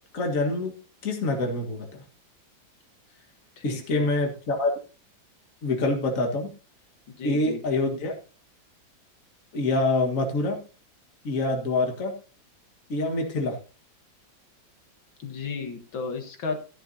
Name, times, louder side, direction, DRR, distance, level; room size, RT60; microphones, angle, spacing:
voice 1, 0.1-0.7 1.0-2.0 3.6-4.7 5.6-6.5 7.2-8.2 9.5-10.6 11.2-12.1 12.9-13.6, left 2 dB, 45° left, 2 dB, 2.0 m, -26 dB
voice 2, 3.6-4.1 7.1-7.6 15.2-16.6, left 5 dB, 75° left, 4 dB, 2.3 m, -34 dB
14.5 x 10.5 x 2.8 m, 0.34 s
omnidirectional pair, 2.2 m